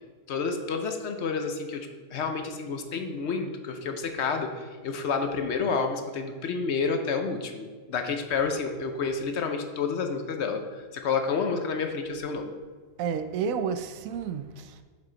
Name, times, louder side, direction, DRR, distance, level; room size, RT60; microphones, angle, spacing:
voice 1, 0.3-12.5, left 5 dB, 60° left, 0.9 m, -29 dB
voice 2, 13.0-14.8, right 6 dB, 90° right, 1.0 m, -31 dB
7.5 x 5.5 x 3.9 m
omnidirectional pair, 1.4 m